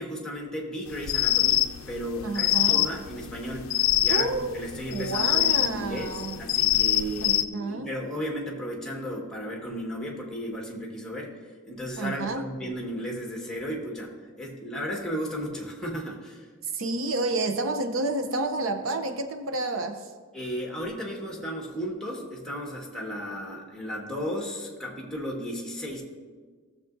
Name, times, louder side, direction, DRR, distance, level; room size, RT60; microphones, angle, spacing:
voice 1, 0.0-3.7 4.0-11.4 11.6-16.4 20.3-26.0, equal, 5° left, -1 dB, 1.6 m, -34 dB
sound 1, 0.9-7.4, left 13 dB, 80° left, 0.4 m, -24 dB
voice 2, 2.2-2.8 4.1-4.6 4.9-6.4 7.2-8.2 12.0-12.5 16.7-20.1, right 2 dB, 70° right, 7 dB, 0.7 m, -30 dB
16.0 x 7.2 x 2.6 m, 1.5 s
head